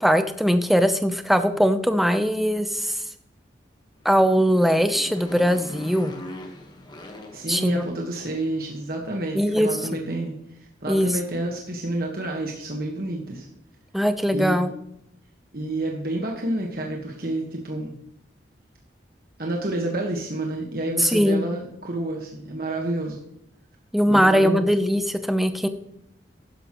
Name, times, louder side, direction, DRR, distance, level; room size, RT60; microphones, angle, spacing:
voice 1, 0.0-3.0 4.0-6.1 7.5-7.8 9.3-9.7 10.9-11.1 13.9-14.7 21.0-21.4 23.9-25.7, equal, ahead, 9 dB, 0.6 m, -20 dB
Motorcycle, 4.0-8.6, left 1 dB, 25° left, 1.3 m, -42 dB
voice 2, 7.3-10.3 10.8-13.5 14.3-14.7 15.5-18.0 19.4-23.2 24.1-24.7, right 1 dB, 55° right, 0 dB, 1.4 m, -29 dB
12.0 x 10.5 x 3.1 m, 0.76 s
head